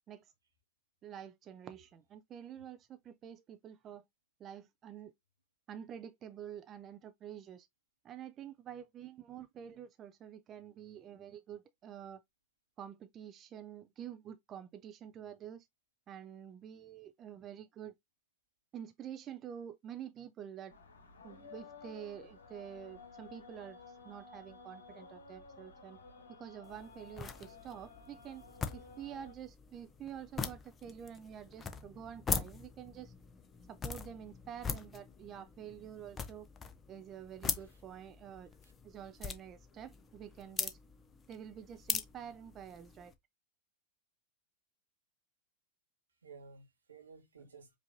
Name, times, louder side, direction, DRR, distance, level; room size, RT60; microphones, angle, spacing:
voice 1, 1.0-4.0 4.4-5.1 5.7-7.7 8.0-12.2 12.8-15.7 16.1-18.0 18.7-20.8 21.2-26.0 26.3-28.5 28.7-33.1 33.7-36.5 36.9-38.5 38.8-40.8 41.3-43.1, right 9 dB, 35° right, 0.4 m, -48 dB
sound 1, 20.7-29.4, left 4 dB, 80° left, 1.0 m, -54 dB
sound 2, 26.6-43.1, left 5 dB, 25° left, 0.7 m, -42 dB
voice 2, 37.5-37.8 38.6-38.7 46.2-47.8, right 5 dB, 85° right, 1.1 m, -55 dB
5.1 x 2.6 x 2.5 m
hypercardioid pair, 95°, 0 cm